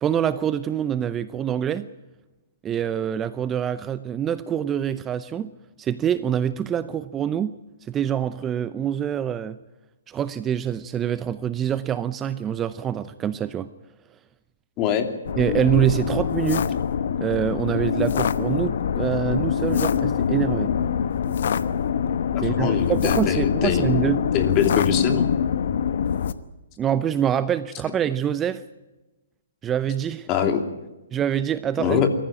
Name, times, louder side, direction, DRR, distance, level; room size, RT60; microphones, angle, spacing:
voice 1, 0.0-1.9 2.6-5.5 5.8-7.5 7.8-9.6 10.1-13.7 15.4-16.7 17.2-20.7 22.4-24.2 26.8-28.6 29.6-30.3 31.1-32.0, right 9 dB, 20° right, 14 dB, 0.6 m, -25 dB
voice 2, 14.8-15.1 22.3-23.9 24.3-25.3 30.3-30.6 31.8-32.1, left 8 dB, 30° left, 6 dB, 2.7 m, -23 dB
sound 1, 15.3-26.3, left 7 dB, 65° left, 1.1 m, -24 dB
23.0 x 14.5 x 9.0 m, 1.1 s
hypercardioid pair, 135°, 0 cm